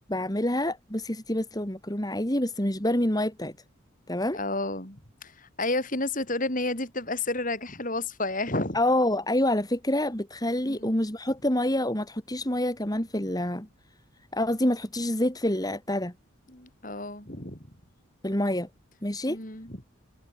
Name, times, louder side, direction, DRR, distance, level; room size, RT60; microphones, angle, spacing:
voice 1, 0.1-3.5 4.1-4.4 8.7-13.7 14.3-16.1 18.2-18.7 19.0-19.4, left 1 dB, 20° left, 2.7 m, -27 dB
voice 2, 4.3-8.8 10.7-11.0 16.5-17.6 19.3-19.8, left 2 dB, 40° left, 6.5 m, -31 dB
head